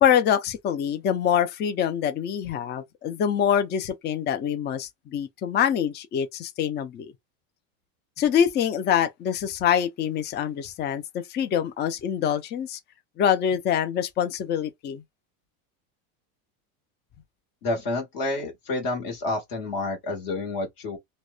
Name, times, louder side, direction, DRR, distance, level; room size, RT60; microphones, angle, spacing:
voice 1, 0.0-7.1 8.2-12.8 13.2-15.0, left 9 dB, 25° left, 0.4 m, -25 dB
voice 2, 17.6-21.0, left 2 dB, 50° left, 1.3 m, -29 dB
2.9 x 2.0 x 2.3 m
supercardioid pair, 115°, 46 cm